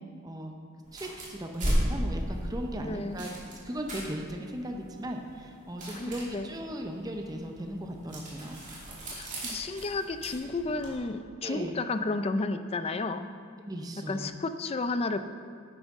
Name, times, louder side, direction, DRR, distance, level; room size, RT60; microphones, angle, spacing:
voice 1, 0.2-0.5 0.9-3.3 3.6-8.6 11.4-11.8 13.6-14.4, equal, 20° right, 3 dB, 0.6 m, -37 dB
sound 1, 0.8-11.0, equal, 35° right, 2.7 m, -36 dB
voice 2, 2.8-3.3 6.0-6.5 9.1-13.3 14.0-15.2, left 3 dB, 30° left, 10 dB, 0.4 m, -32 dB
10.5 x 9.7 x 3.6 m, 2.2 s
head